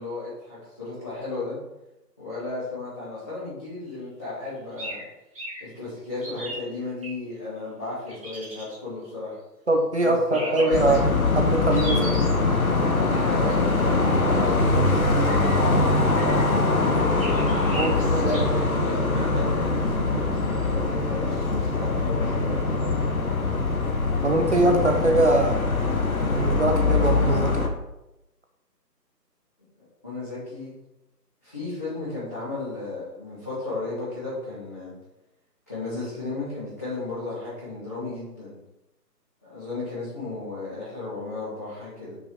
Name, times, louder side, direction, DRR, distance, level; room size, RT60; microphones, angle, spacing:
voice 1, 0.0-1.6 2.2-5.0 5.6-9.4 10.0-10.9 13.1-17.5 18.2-22.6 30.0-30.7 31.4-34.9 35.7-38.6 39.4-42.2, left 2 dB, 10° left, -16 dB, 1.0 m, -34 dB
sound 1, 4.8-5.0 5.3-5.6 6.2-7.1 8.1-8.7 10.3-11.0 11.7-12.3 15.2-15.6 16.1-16.7 17.2-18.4, right 1 dB, 20° right, 1.6 m, -36 dB
voice 2, 9.7-11.0 11.4-12.2 17.7-18.4 24.2-25.6 26.4-27.6, right 2 dB, 45° right, 3 dB, 0.8 m, -22 dB
sound 2, 10.7-27.7, left 3 dB, 55° left, 1.1 m, -23 dB
6.0 x 5.3 x 4.5 m, 0.94 s
figure-of-eight pair, 160°, 50 cm